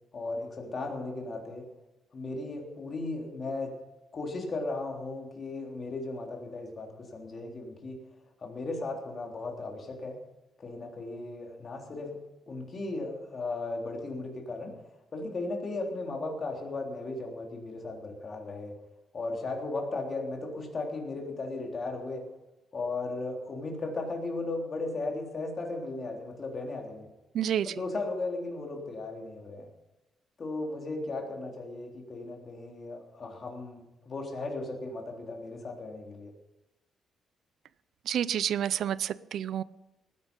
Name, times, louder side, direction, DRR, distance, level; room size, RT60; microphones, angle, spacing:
voice 1, 0.1-1.7 2.1-3.8 4.1-8.0 8.4-10.2 10.6-12.2 12.5-14.7 15.1-18.7 19.1-22.3 22.7-27.1 27.6-29.7 30.4-36.3, left 2 dB, 35° left, 1 dB, 3.5 m, -36 dB
voice 2, 27.3-27.7 38.1-39.6, right 10 dB, 70° right, 18 dB, 0.5 m, -29 dB
19.0 x 10.5 x 5.4 m, 0.97 s
cardioid pair, 135°, 0 cm